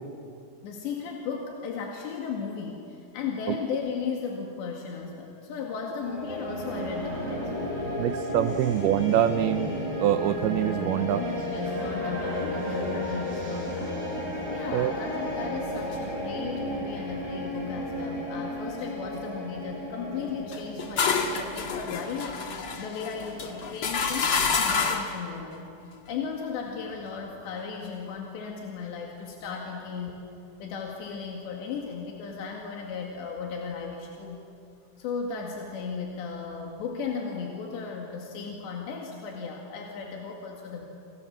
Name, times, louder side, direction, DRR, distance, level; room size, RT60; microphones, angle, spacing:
voice 1, 0.6-7.7 8.5-8.7 11.2-14.2 14.5-22.3 22.8-25.7 26.1-30.1 30.6-34.4 35.0-40.9, left 5 dB, 85° left, 0 dB, 4.4 m, -36 dB
sound 1, 6.0-24.2, left 1 dB, 60° right, 8.4 m, -34 dB
voice 2, 8.0-9.7 10.0-11.2 14.7-14.9, right 11 dB, 75° right, 11 dB, 2.5 m, -25 dB
sound 2, 20.5-25.2, left 5 dB, 45° left, 1.8 m, -28 dB
29.0 x 27.5 x 7.4 m, 2.6 s
omnidirectional pair, 4.9 m